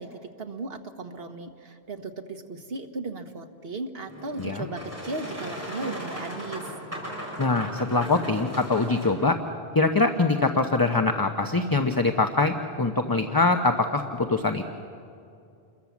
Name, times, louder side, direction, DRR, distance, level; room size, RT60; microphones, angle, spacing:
voice 1, 0.0-6.7, right 3 dB, 70° right, 5 dB, 1.7 m, -36 dB
Boat Water vehicle, 4.1-9.1, equal, 15° right, 5.1 m, -37 dB
voice 2, 7.4-9.4 9.7-14.7, left 3 dB, 25° left, 5 dB, 0.9 m, -23 dB
28.5 x 22.0 x 7.3 m, 2.5 s
omnidirectional pair, 1.0 m